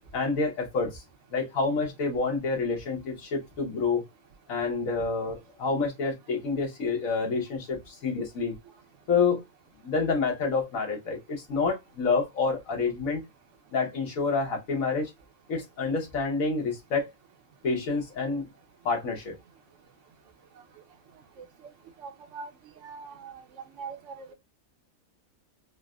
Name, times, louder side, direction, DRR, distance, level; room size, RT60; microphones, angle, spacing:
voice 1, 0.1-1.0 1.3-4.0 4.5-8.5 9.1-9.4 9.8-13.2 13.7-15.1 15.5-17.1 17.6-18.5 18.8-19.4, left 4 dB, 75° left, 1.5 m, -28 dB
voice 2, 22.0-22.5 22.8-23.4 23.8-24.3, right 5 dB, 70° right, 0.8 m, -41 dB
4.0 x 2.1 x 2.3 m
omnidirectional pair, 1.5 m